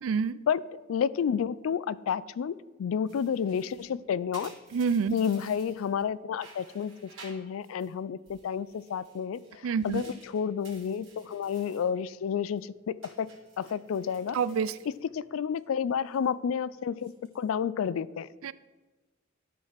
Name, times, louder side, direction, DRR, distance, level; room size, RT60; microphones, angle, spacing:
voice 1, 0.0-0.4 4.7-5.1 9.6-10.0 14.3-14.8 18.4-18.5, right 6 dB, 85° right, 17 dB, 0.4 m, -27 dB
voice 2, 0.9-4.5 5.1-9.4 9.8-13.3 13.6-14.4 15.1-18.3, left 7 dB, 80° left, 19 dB, 0.3 m, -30 dB
sound 1, 3.1-6.1 6.3-7.9 8.3-11.9 12.2-12.6 13.0-15.6 15.9-16.3 16.9-17.5, right 3 dB, 70° right, 2.7 m, -54 dB
12.5 x 4.7 x 5.8 m, 1.2 s
head